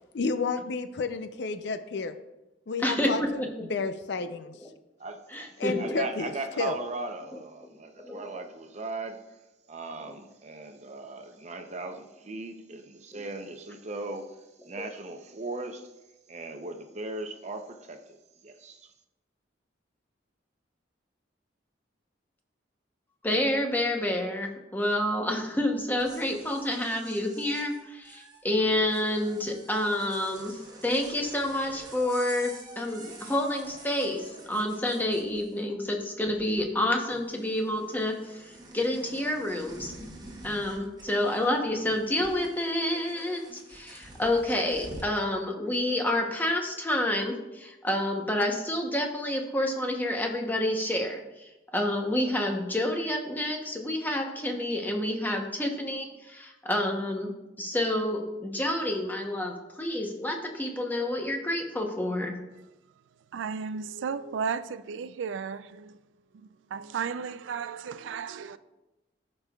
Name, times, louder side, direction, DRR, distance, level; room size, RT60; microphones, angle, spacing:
voice 1, 0.1-2.2 2.7-3.4 3.7-4.5 5.6-6.8, left 4 dB, 65° left, 0.5 m, -31 dB
voice 2, 2.8-3.5 5.3-5.9 8.0-8.2 13.1-13.2 23.2-39.9 40.4-57.3 57.6-62.3, left 1 dB, 10° left, 0.8 m, -29 dB
voice 3, 5.0-9.2 9.7-14.4 14.6-15.9 16.3-18.2 18.4-18.9, right 3 dB, 40° right, 0.7 m, -38 dB
sound 1, 25.8-35.8 36.1-36.9 37.1-45.2, right 1 dB, 20° right, 1.2 m, -48 dB
voice 4, 63.3-66.0 66.3-68.6, right 6 dB, 85° right, 0.4 m, -34 dB
14.0 x 5.3 x 2.3 m
head